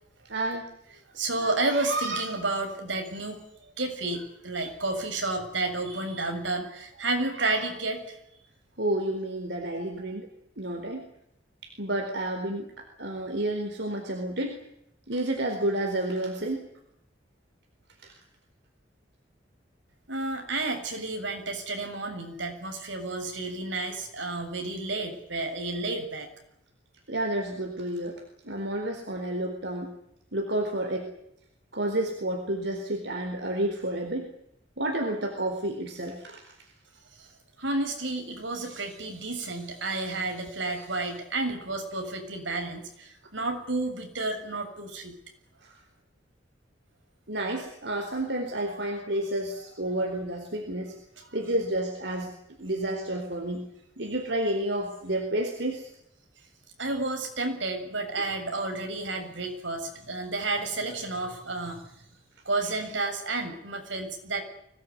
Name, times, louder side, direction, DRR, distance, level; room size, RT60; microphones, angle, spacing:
voice 1, 0.2-0.8 8.8-10.3 10.6-11.1 11.6-14.7 15.1-16.7 18.0-18.1 27.1-29.9 30.3-31.1 31.7-34.3 34.8-36.4 45.6-45.7 47.3-51.0 51.3-52.3 52.6-53.6 54.0-55.9, right 1 dB, 65° right, 3 dB, 4.4 m, -30 dB
voice 2, 1.2-8.2 20.1-26.3 37.6-45.2 51.2-51.3 56.8-61.8 62.5-64.4, right 2 dB, 80° right, 4 dB, 7.1 m, -31 dB
25.0 x 19.5 x 9.6 m, 0.78 s
head